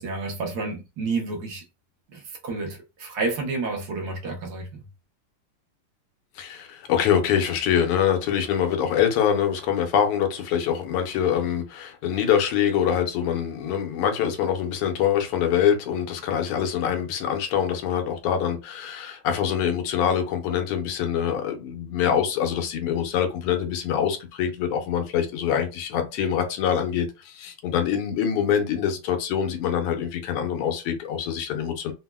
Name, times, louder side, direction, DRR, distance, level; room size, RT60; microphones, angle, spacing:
voice 1, 0.0-1.6 2.1-4.9, right 3 dB, 60° right, 1.0 m, -30 dB
voice 2, 6.4-31.9, left 8 dB, 85° left, 1.6 m, -24 dB
4.0 x 2.0 x 2.2 m
omnidirectional pair, 2.4 m